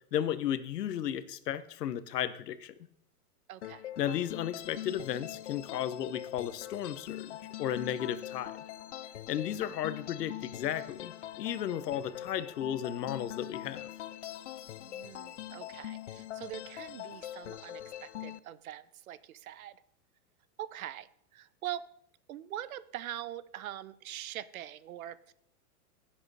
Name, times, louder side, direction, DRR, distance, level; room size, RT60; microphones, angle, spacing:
voice 1, 0.1-2.7 4.0-8.5 9.3-13.9, left 10 dB, 85° left, 14 dB, 1.1 m, -34 dB
voice 2, 3.5-3.9 14.8-19.8 20.6-21.9 22.3-25.3, right 12 dB, 60° right, 17 dB, 0.7 m, -43 dB
sound 1, 3.6-18.4, left 13 dB, 50° left, 0.5 m, -43 dB
16.0 x 7.9 x 4.1 m, 0.68 s
supercardioid pair, 175°, 47 cm